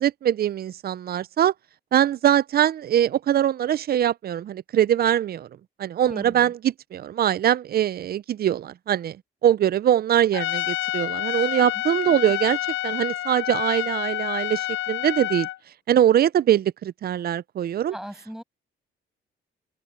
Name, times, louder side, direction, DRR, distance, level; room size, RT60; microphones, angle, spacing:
voice 1, 0.0-1.5 1.9-5.5 5.8-9.2 9.4-12.6 12.8-15.5 15.9-17.9, right 11 dB, 50° right, 0.5 m, -22 dB
voice 2, 6.0-6.5 11.5-11.8 17.9-18.4, equal, ahead, 6.4 m, -38 dB
Trumpet, 10.3-15.6, left 15 dB, 75° left, 0.6 m, -28 dB
open air
cardioid pair, 90°, 20 cm